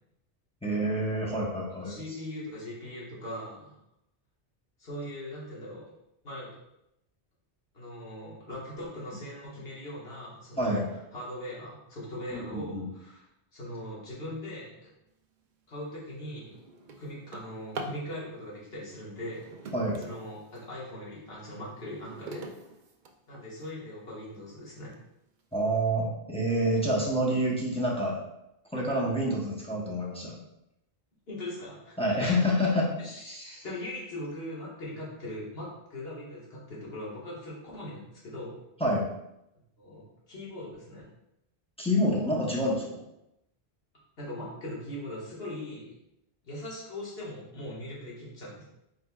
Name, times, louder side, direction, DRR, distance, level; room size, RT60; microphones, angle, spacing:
voice 1, 0.6-2.0 10.6-10.8 12.3-12.9 19.7-20.0 25.5-28.2 28.7-30.4 32.0-33.0 33.2-33.6 38.8-39.1 41.8-43.0, equal, 5° left, -4 dB, 0.8 m, -28 dB
voice 2, 1.8-3.8 4.8-5.8 6.2-6.5 7.7-10.8 11.1-13.2 13.5-14.9 15.7-16.5 17.0-19.7 20.0-22.4 23.3-25.0 31.3-32.4 33.0-38.6 39.8-41.0 44.2-46.0 46.4-48.6, left 1 dB, 65° left, -6 dB, 1.7 m, -40 dB
Drawer open or close, 15.4-15.6 16.1-18.1 19.1-20.7 21.3-23.7 24.3-24.4 24.9-25.0 25.4-25.8, right 2 dB, 55° right, 0.6 m, -44 dB
4.6 x 4.4 x 2.3 m, 0.84 s
omnidirectional pair, 1.1 m